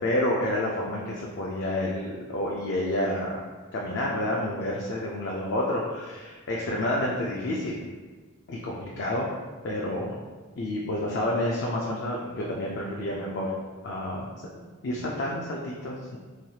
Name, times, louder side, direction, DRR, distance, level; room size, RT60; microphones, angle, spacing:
voice 1, 0.0-3.4 3.7-7.8 8.5-9.3 9.6-10.2 10.6-13.5 13.8-14.3 14.5-16.2, left 1 dB, 55° left, -3 dB, 0.4 m, -29 dB
3.1 x 2.3 x 2.7 m, 1.4 s
head